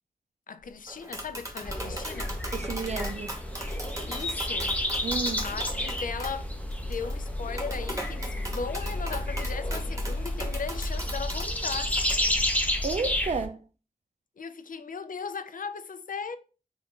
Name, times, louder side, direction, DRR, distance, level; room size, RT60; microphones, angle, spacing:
voice 1, 0.5-2.4 4.1-4.8 5.4-6.5 6.8-11.9 14.4-16.4, left 5 dB, 65° left, 0.4 m, -37 dB
sound 1, 0.6-0.7 1.2-10.0, left 1 dB, 35° left, 0.9 m, -45 dB
Tap, 0.9-12.1, right 1 dB, 20° right, 0.9 m, -39 dB
sound 2, 1.6-13.5, left 1 dB, 10° left, 0.5 m, -31 dB
voice 2, 2.5-3.4 5.0-5.4 12.8-13.6, right 4 dB, 45° right, 0.4 m, -31 dB
3.5 x 2.5 x 3.6 m
wide cardioid pair, 60°, 15 cm